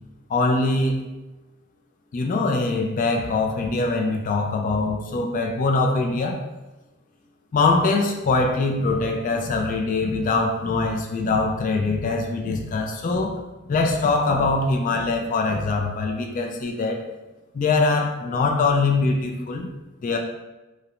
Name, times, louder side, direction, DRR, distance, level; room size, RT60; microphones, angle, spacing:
voice 1, 0.3-1.0 2.1-6.4 7.5-13.3 13.6-17.0 17.5-19.7 20.0-20.2, left 3 dB, 40° left, 2 dB, 0.3 m, -23 dB
2.5 x 2.0 x 2.8 m, 1.1 s
head